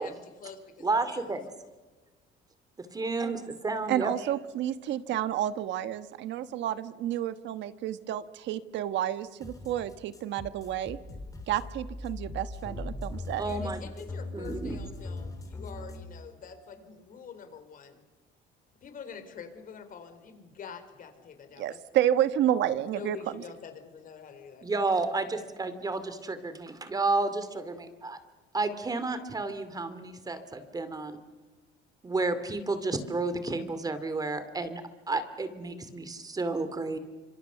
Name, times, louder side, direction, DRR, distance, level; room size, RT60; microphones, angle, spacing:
voice 1, 0.0-1.3 13.4-18.0 18.8-21.8 22.8-24.7, left 6 dB, 45° left, 10 dB, 4.1 m, -46 dB
voice 2, 0.8-1.5 2.8-4.1 13.4-13.8 14.3-14.8 24.6-28.2 28.5-31.2 32.0-37.0, right 3 dB, 20° right, 11 dB, 2.5 m, -31 dB
voice 3, 3.9-11.0 11.5-13.4 21.6-23.4, right 11 dB, 70° right, 12 dB, 1.3 m, -30 dB
sound 1, 9.4-16.0, left 2 dB, 20° left, 3.7 m, -40 dB
30.0 x 26.5 x 6.9 m, 1.3 s
cardioid pair, 150°, 19 cm